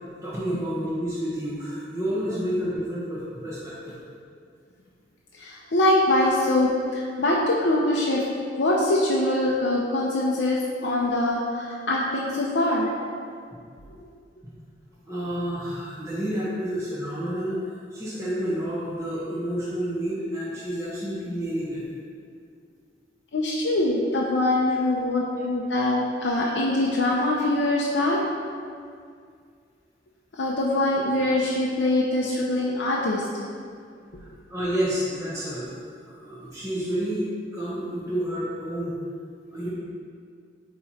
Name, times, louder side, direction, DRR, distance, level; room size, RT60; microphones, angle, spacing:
voice 1, 0.2-3.9 7.1-7.2 15.1-17.6 17.9-21.8 34.2-35.7 36.1-38.9 39.5-39.7, equal, 15° right, -11 dB, 1.1 m, -29 dB
voice 2, 5.4-8.2 8.6-12.9 23.3-28.2 30.4-33.2, left 1 dB, 85° left, -4 dB, 0.7 m, -23 dB
8.6 x 3.1 x 4.3 m, 2.2 s
head